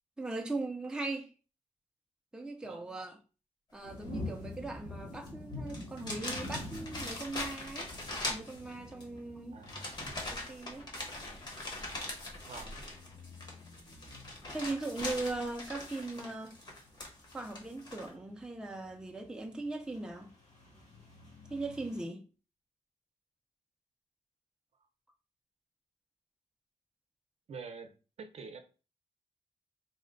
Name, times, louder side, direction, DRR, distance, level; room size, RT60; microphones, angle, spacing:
voice 1, 0.2-1.3 2.3-3.2 3.7-7.9 8.3-9.8 10.3-10.9 14.5-16.6 17.3-20.3 21.5-22.3, right 2 dB, 5° right, 0.4 m, -39 dB
voice 2, 2.6-3.0 9.5-9.9 12.4-12.8 27.5-27.9 28.2-28.6, right 5 dB, 60° right, 0.6 m, -46 dB
sound 1, 3.8-22.0, left 2 dB, 80° left, 1.8 m, -48 dB
sound 2, 5.1-5.3 5.7-9.0 9.6-18.1, left 2 dB, 35° left, 1.0 m, -41 dB
4.1 x 2.1 x 3.8 m
wide cardioid pair, 170°, 12 cm